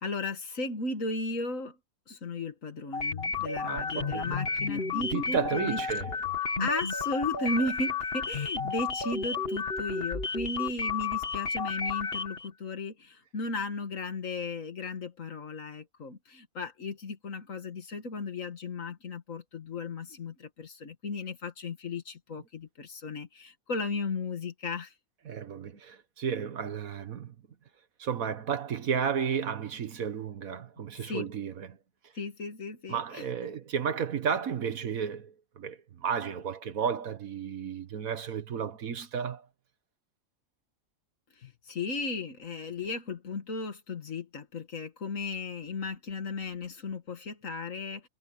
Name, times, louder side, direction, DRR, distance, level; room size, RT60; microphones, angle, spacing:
voice 1, 0.0-1.8 2.1-5.8 6.6-24.9 31.1-31.3 32.2-33.6 41.4-48.1, left 3 dB, 70° left, 2.2 m, -35 dB
sound 1, 2.9-12.5, left 5 dB, 45° left, 2.1 m, -32 dB
voice 2, 3.6-4.4 5.1-6.2 25.3-27.4 28.0-31.8 32.9-39.5, right 7 dB, 80° right, 1.8 m, -33 dB
omnidirectional pair, 1.4 m